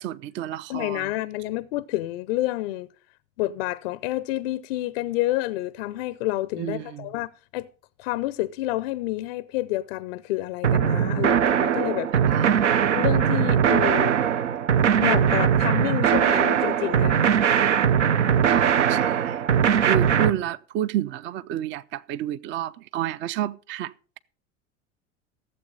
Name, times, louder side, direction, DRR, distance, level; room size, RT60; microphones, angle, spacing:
voice 1, 0.0-1.1 6.6-7.1 12.3-12.9 18.4-19.4 19.8-24.2, right 11 dB, 30° right, 0.5 m, -30 dB
voice 2, 0.7-2.9 3.4-7.7 8.0-12.1 12.9-14.2 15.0-17.4, left 16 dB, 50° left, 0.5 m, -29 dB
sound 1, 10.6-20.3, right 8 dB, 70° right, 0.8 m, -20 dB
14.5 x 7.7 x 5.2 m
figure-of-eight pair, 75°, 37 cm